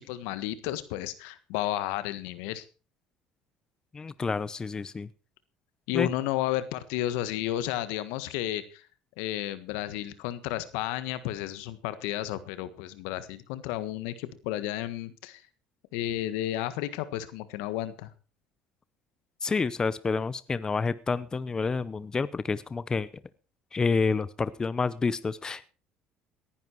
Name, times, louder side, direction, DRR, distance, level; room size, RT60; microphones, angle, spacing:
voice 1, 0.0-2.6 5.9-8.9 9.2-15.4 15.9-18.1, left 14 dB, 85° left, 13 dB, 1.5 m, -32 dB
voice 2, 3.9-5.1 5.9-6.1 19.4-23.1 23.7-25.7, left 4 dB, 25° left, 17 dB, 0.8 m, -29 dB
18.0 x 11.0 x 4.6 m, 0.35 s
supercardioid pair, 100°, 3 cm